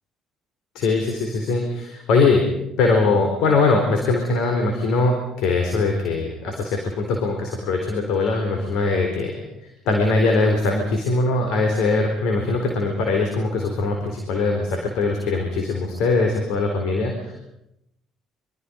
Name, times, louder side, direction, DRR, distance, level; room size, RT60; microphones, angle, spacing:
voice 1, 0.7-2.4 2.8-9.3 9.6-17.3, left 3 dB, 70° left, 3 dB, 4.2 m, -21 dB
26.5 x 24.5 x 5.4 m, 0.85 s
hypercardioid pair, 55°, 0 cm